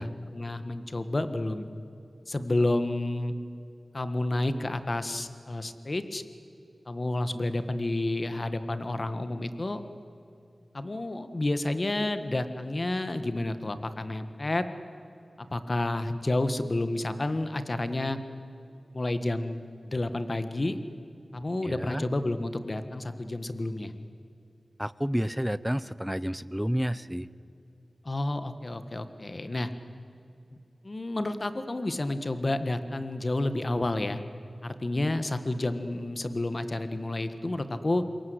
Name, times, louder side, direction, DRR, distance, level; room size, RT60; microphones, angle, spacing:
voice 1, 0.0-1.7 2.3-3.3 3.9-6.2 6.9-9.8 10.7-14.7 15.4-18.2 18.9-20.8 21.3-23.9 28.0-29.7 30.8-34.2 34.6-38.0, left 2 dB, 35° left, 10 dB, 1.6 m, -30 dB
voice 2, 21.6-22.0 24.8-27.3, equal, 5° right, 17 dB, 0.7 m, -30 dB
27.0 x 22.5 x 8.0 m, 2.7 s
wide cardioid pair, 85°, 0 cm